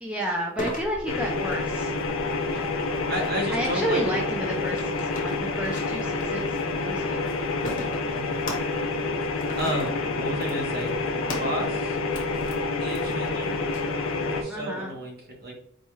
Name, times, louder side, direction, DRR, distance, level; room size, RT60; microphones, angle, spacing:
voice 1, 0.0-1.9 3.5-7.2 14.5-14.9, equal, 5° right, -2 dB, 0.4 m, -31 dB
sound 1, 0.6-13.8, left 2 dB, 40° left, 0.8 m, -40 dB
voice 2, 1.0-1.6 2.4-4.2 8.1-8.5 9.6-12.0 12.8-13.6 14.2-15.5, right 1 dB, 45° right, -1 dB, 1.0 m, -33 dB
sound 2, 1.1-14.4, left 3 dB, 85° left, 0.5 m, -28 dB
4.1 x 2.3 x 3.0 m, 0.64 s
head